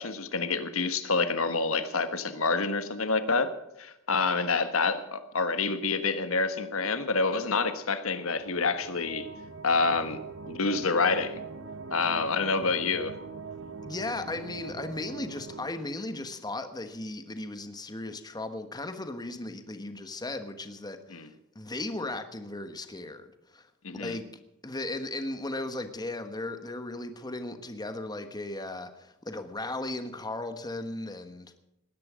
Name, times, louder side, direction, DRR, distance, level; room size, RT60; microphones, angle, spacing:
voice 1, 0.0-3.5 3.8-9.3 9.6-11.4 11.9-13.2 21.1-21.3 23.8-24.2, left 4 dB, 75° left, 10 dB, 1.4 m, -27 dB
sound 1, 8.3-15.7, right 4 dB, 70° right, 1.2 m, -42 dB
voice 2, 13.8-21.3 21.5-23.7 23.9-24.3 24.6-31.6, left 2 dB, 20° left, 9 dB, 1.2 m, -36 dB
19.5 x 10.5 x 6.2 m, 0.88 s
head